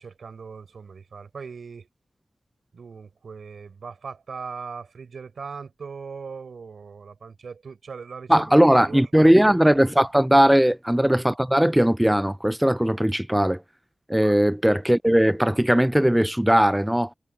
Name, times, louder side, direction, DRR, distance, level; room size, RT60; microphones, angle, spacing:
voice 1, 0.0-1.9 2.7-9.1 10.4-10.6 14.2-14.4, right 5 dB, 90° right, 4.7 m, -39 dB
voice 2, 8.3-13.6 14.1-17.1, equal, 5° right, 0.3 m, -19 dB
wide cardioid pair, 120°, 0 cm